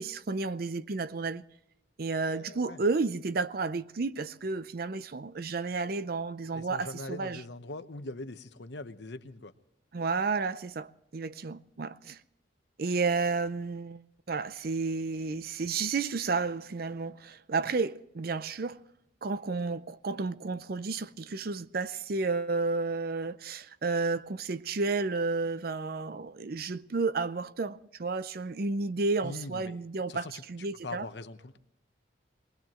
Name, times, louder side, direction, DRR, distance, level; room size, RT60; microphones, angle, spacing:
voice 1, 0.0-1.4 2.0-7.4 9.9-12.2 12.8-14.0 14.3-18.8 19.2-31.1, right 4 dB, 55° right, 0.5 m, -32 dB
voice 2, 2.2-2.8 6.5-9.5 29.2-29.8 30.1-30.4 30.8-31.6, left 2 dB, 65° left, 0.9 m, -42 dB
23.5 x 19.5 x 3.0 m
head